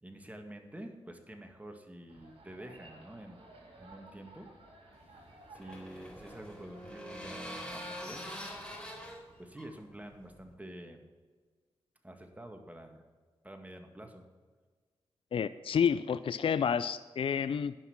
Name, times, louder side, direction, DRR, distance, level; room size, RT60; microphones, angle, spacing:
voice 1, 0.0-3.5 3.8-4.5 5.1-8.6 9.4-11.0 12.0-13.0 13.4-14.3, right 1 dB, 15° right, 4 dB, 2.0 m, -48 dB
sound 1, 2.1-9.1, right 2 dB, 75° right, 3.4 m, -57 dB
sound 2, 5.0-10.5, equal, 10° left, 3.7 m, -45 dB
voice 2, 15.3-17.8, left 7 dB, 60° left, 14 dB, 0.4 m, -29 dB
11.0 x 5.9 x 8.5 m, 1.5 s
cardioid pair, 50°, 10 cm